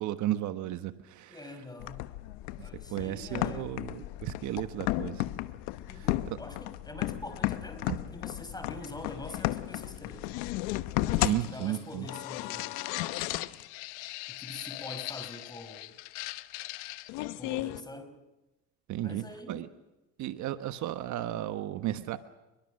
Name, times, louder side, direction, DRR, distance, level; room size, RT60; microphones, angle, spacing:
voice 1, 0.0-1.5 2.6-5.2 5.9-6.4 7.9-8.0 11.0-12.1 18.9-19.7 20.2-22.2, right 13 dB, 60° right, 10 dB, 1.3 m, -34 dB
voice 2, 1.3-2.1 2.6-3.8 5.9-10.4 11.2-12.7 14.4-16.0 17.4-18.2 19.0-19.6, left 2 dB, 10° left, 8 dB, 5.2 m, -44 dB
sound 1, 1.8-17.8, left 17 dB, 85° left, 1.1 m, -35 dB
28.0 x 22.5 x 6.5 m, 1.0 s
supercardioid pair, 105°, 33 cm